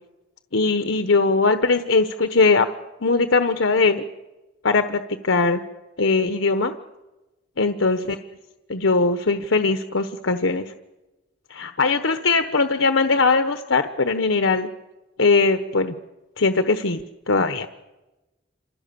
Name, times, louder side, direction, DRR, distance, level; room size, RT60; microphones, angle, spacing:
voice 1, 0.5-2.7 3.0-4.0 4.6-5.6 6.0-6.7 7.6-8.2 8.7-10.7 11.5-14.7 15.2-15.9 16.4-17.0 17.3-17.7, left 3 dB, 80° left, 8 dB, 1.1 m, -20 dB
28.5 x 26.0 x 7.0 m, 1.1 s
head